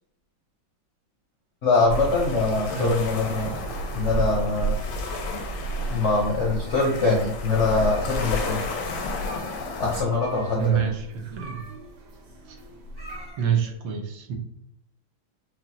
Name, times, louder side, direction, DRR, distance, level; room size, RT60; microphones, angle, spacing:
voice 1, 1.6-3.6 3.9-4.8 5.9-8.6 9.8-10.9, left 3 dB, 70° left, -2 dB, 0.7 m, -23 dB
sound 1, 1.8-13.3, right 4 dB, 60° right, 1.2 m, -36 dB
sound 2, 1.9-10.0, left 4 dB, 85° left, 1.5 m, -32 dB
sound 3, 5.0-5.7 6.1-6.2 6.5-7.5 7.7-8.4 8.6-8.7 9.2-9.7 10.1-13.7, right 3 dB, 40° left, 0.3 m, -43 dB
voice 2, 10.6-11.6 12.5-12.6 13.4-14.4, right 8 dB, 75° right, 3 dB, 1.4 m, -27 dB
5.9 x 2.3 x 2.7 m, 0.78 s
omnidirectional pair, 2.2 m